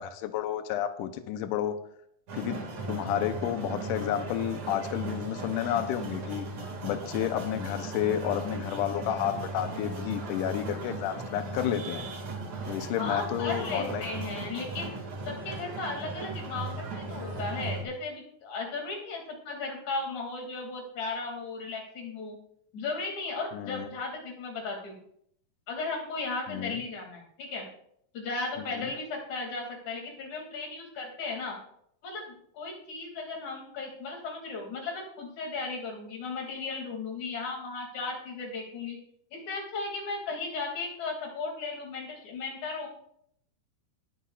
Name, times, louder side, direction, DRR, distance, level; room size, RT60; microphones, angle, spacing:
voice 1, 0.0-1.8 2.3-6.5 6.8-12.1 12.7-14.1 23.5-23.9 26.5-26.8 28.8-28.9, left 10 dB, 85° left, 8 dB, 1.9 m, -31 dB
sound 1, 2.3-17.8, right 2 dB, 50° right, 3.0 m, -37 dB
voice 2, 13.0-14.9 15.3-22.4 22.7-25.0 25.7-27.7 28.1-31.6 32.0-39.0 39.3-42.9, left 3 dB, 50° left, 0 dB, 3.6 m, -36 dB
20.0 x 9.9 x 2.4 m, 0.69 s
omnidirectional pair, 4.6 m